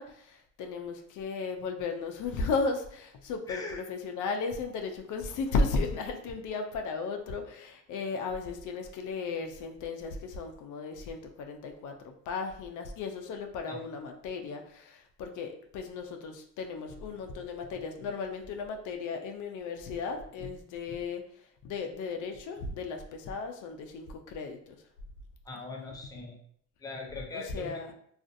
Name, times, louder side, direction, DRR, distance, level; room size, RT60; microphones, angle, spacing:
voice 1, 0.0-12.0 12.3-24.8 27.3-27.9, left 4 dB, 80° left, 4 dB, 0.5 m, -35 dB
voice 2, 3.5-3.8 13.7-13.8 25.4-26.4 26.8-27.9, left 3 dB, 10° left, 0 dB, 0.6 m, -41 dB
2.4 x 2.4 x 2.6 m, 0.66 s
cardioid pair, 90°, 30 cm